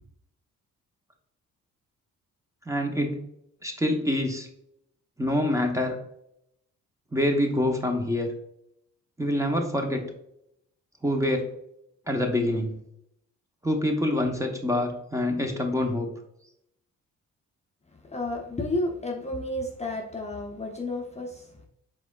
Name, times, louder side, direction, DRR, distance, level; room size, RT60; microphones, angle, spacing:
voice 1, 2.7-3.2 3.6-4.5 5.2-6.0 7.1-8.3 9.2-10.1 11.0-11.5 12.1-12.8 13.6-16.1, left 1 dB, 10° right, 3 dB, 0.9 m, -26 dB
voice 2, 18.0-21.5, left 1 dB, 20° left, 0 dB, 0.7 m, -31 dB
4.7 x 3.8 x 2.3 m, 0.76 s
cardioid pair, 70°, 33 cm